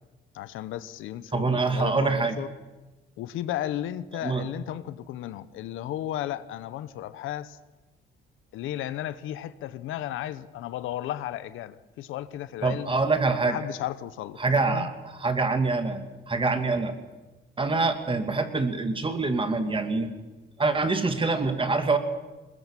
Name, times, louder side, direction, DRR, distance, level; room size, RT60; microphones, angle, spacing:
voice 1, 0.3-2.5 3.2-7.6 8.5-12.9 13.4-14.9, left 12 dB, 90° left, 15 dB, 1.0 m, -34 dB
voice 2, 1.3-2.4 4.2-4.5 12.6-13.6 14.4-16.9 17.6-20.1 20.6-22.0, right 3 dB, 25° right, 7 dB, 2.6 m, -25 dB
21.0 x 21.0 x 7.5 m, 1.1 s
cardioid pair, 90°, 20 cm